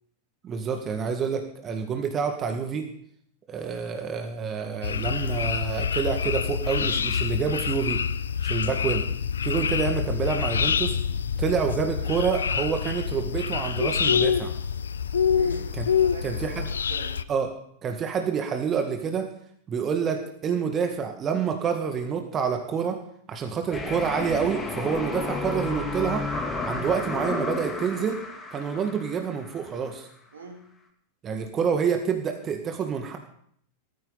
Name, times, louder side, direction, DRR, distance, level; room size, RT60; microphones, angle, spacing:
voice 1, 0.4-2.9 3.5-8.0 8.4-9.0 9.4-11.0 11.4-14.5 15.8-15.9 16.2-16.7 17.3-17.5 17.8-19.3 19.7-23.0 23.3-26.2 26.6-28.2 28.5-30.1 31.2-33.2, right 6 dB, 25° right, 5 dB, 1.9 m, -28 dB
sound 1, 4.8-17.2, left 7 dB, 70° left, 0.6 m, -26 dB
voice 2, 15.3-17.2 30.3-30.7, right 4 dB, 70° right, 2 dB, 3.1 m, -42 dB
sound 2, 23.7-29.7, left 3 dB, 15° left, 2.7 m, -32 dB
18.0 x 14.5 x 4.1 m, 0.65 s
figure-of-eight pair, 90°, 0 cm